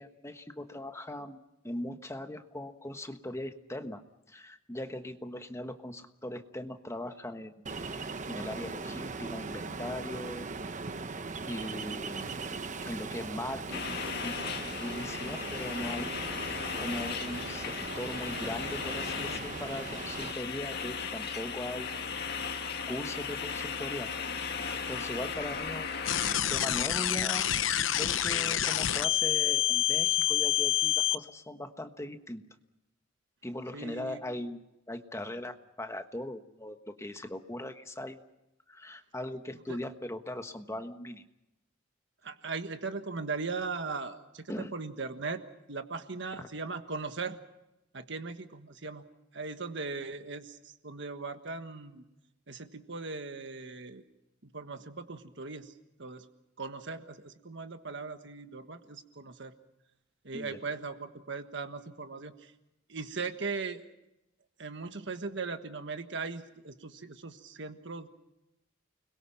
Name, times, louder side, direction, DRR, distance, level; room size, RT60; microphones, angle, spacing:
voice 1, 0.0-1.4 1.6-4.0 4.3-7.6 8.3-10.5 11.4-12.3 12.8-14.3 14.8-16.2 16.8-22.0 22.5-24.1 24.5-25.9 26.5-27.5 27.9-32.4 33.4-34.6 34.9-38.2 38.7-41.2 44.5-44.7 46.3-46.5 60.3-60.6, left 1 dB, 15° left, 7 dB, 1.3 m, -39 dB
Ocean, 7.7-20.3, right 3 dB, 40° right, 0.9 m, -39 dB
sound 1, 13.7-26.4, left 6 dB, 55° left, 2.0 m, -36 dB
sound 2, 26.1-31.2, left 11 dB, 85° left, 0.9 m, -27 dB
voice 2, 33.7-34.2 39.7-39.8 42.2-45.4 45.7-47.4 47.9-49.0 49.3-52.0 52.5-54.0 54.5-55.7 56.0-56.2 56.6-59.5 60.2-62.5 62.9-63.8 64.6-68.1, right 4 dB, 65° right, 8 dB, 1.5 m, -39 dB
29.5 x 22.0 x 5.8 m, 0.91 s
head